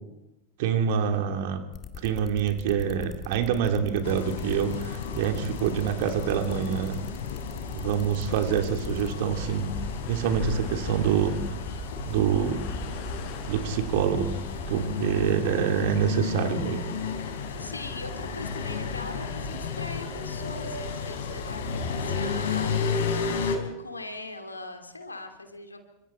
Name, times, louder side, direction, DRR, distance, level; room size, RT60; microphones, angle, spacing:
voice 1, 0.6-1.6 2.0-7.0 7.7-9.7 10.1-11.3 12.0-12.6 13.5-14.3 14.7-16.8, right 8 dB, 50° right, 5 dB, 2.8 m, -26 dB
sound 1, 1.7-9.1, left 8 dB, 25° left, 2.2 m, -41 dB
sound 2, 4.0-23.6, left 5 dB, 60° left, 5.7 m, -33 dB
sound 3, 9.3-15.2, left 1 dB, 40° left, 5.3 m, -38 dB
voice 2, 17.4-21.6 21.9-25.8, left 2 dB, 80° left, 6 dB, 2.8 m, -41 dB
29.5 x 25.5 x 4.4 m, 0.93 s
figure-of-eight pair, 90°, 0 cm